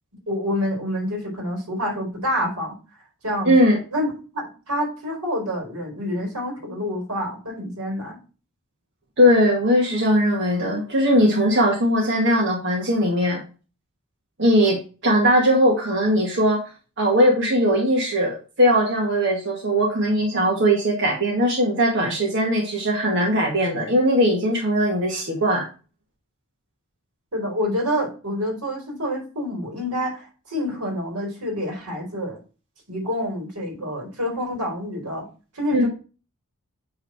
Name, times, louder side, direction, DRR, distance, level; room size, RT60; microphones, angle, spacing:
voice 1, 0.3-2.7 3.2-3.5 3.9-8.2 27.3-32.4 32.9-35.3 35.5-35.9, equal, 90° right, 0 dB, 3.9 m, -27 dB
voice 2, 3.4-3.8 9.2-13.4 14.4-16.6 17.0-25.7 35.7-35.9, equal, 55° right, -2 dB, 1.9 m, -19 dB
9.1 x 3.9 x 4.2 m, 0.34 s
head